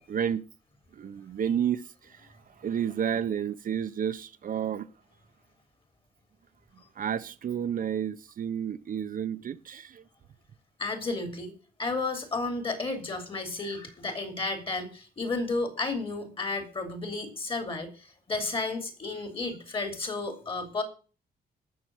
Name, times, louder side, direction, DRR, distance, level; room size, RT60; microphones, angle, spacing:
voice 1, 0.1-0.4 1.0-1.8 2.6-4.9 7.0-10.0, right 8 dB, 55° right, 0.9 m, -30 dB
voice 2, 10.8-11.5 11.8-20.8, left 3 dB, 30° left, 3.4 m, -32 dB
16.5 x 7.0 x 6.2 m
wide cardioid pair, 140°, 17 cm